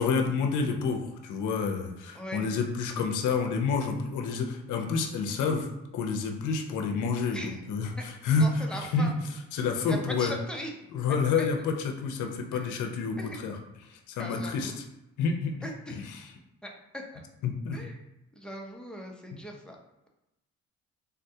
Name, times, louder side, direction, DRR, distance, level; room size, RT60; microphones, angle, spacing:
voice 1, 0.0-5.7 5.9-9.1 9.5-10.3 10.9-13.6 13.9-14.7 15.2-15.5 15.9-16.3 17.4-17.8, left 5 dB, 80° left, 3 dB, 0.6 m, -29 dB
voice 2, 2.1-2.5 7.3-7.6 8.0-8.1 8.4-9.1 9.9-10.7 11.4-11.5 12.5-12.7 13.2-13.4 14.2-14.8 15.6-16.0 16.6-17.2 17.7-18.0 18.4-19.8, equal, 5° left, 0 dB, 0.6 m, -39 dB
3.6 x 2.2 x 2.7 m, 0.93 s
cardioid pair, 90°, 30 cm